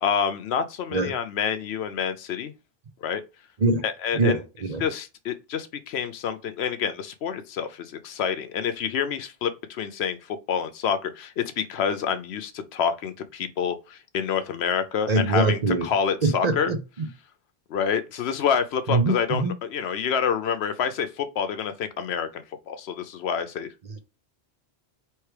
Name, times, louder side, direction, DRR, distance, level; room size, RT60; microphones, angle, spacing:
voice 1, 0.0-2.5 3.0-3.2 3.8-4.4 4.8-16.7 17.7-23.7, left 7 dB, 80° left, 0.9 m, -28 dB
voice 2, 4.1-4.8 15.1-15.9 16.2-17.1 18.9-19.5, right 2 dB, 45° right, 0.7 m, -23 dB
4.6 x 3.1 x 3.3 m
omnidirectional pair, 1.1 m